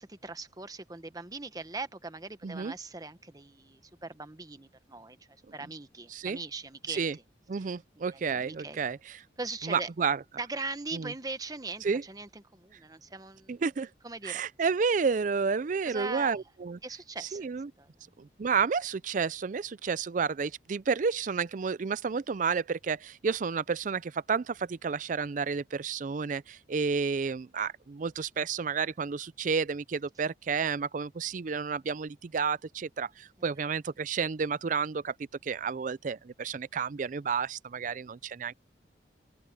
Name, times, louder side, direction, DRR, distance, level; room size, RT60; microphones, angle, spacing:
voice 1, 0.0-5.2 5.5-7.0 8.0-8.8 9.4-9.9 10.4-13.6 14.0-14.4 15.8-16.4 16.8-17.5 17.8-17.9 38.0-38.1, right 3 dB, 20° right, 1.0 m, -40 dB
voice 2, 2.4-2.7 6.1-6.4 6.9-7.2 7.5-9.2 9.6-10.2 10.9-11.1 11.8-12.0 13.5-13.9 14.2-16.8 17.2-17.7 18.2-35.1 35.4-38.5, right 5 dB, 45° right, 0.4 m, -31 dB
open air
head